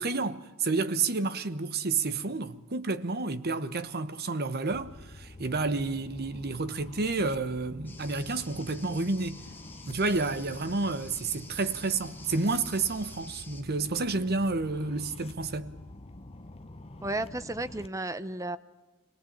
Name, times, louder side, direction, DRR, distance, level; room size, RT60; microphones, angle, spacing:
voice 1, 0.0-9.4 9.9-15.7, right 3 dB, 45° right, 1.0 m, -30 dB
sound 1, 4.7-17.9, left 1 dB, 25° left, 0.8 m, -47 dB
sound 2, 7.8-13.6, left 3 dB, 10° left, 1.6 m, -50 dB
voice 2, 17.0-18.6, right 2 dB, 15° right, 0.8 m, -33 dB
26.5 x 18.0 x 8.7 m
head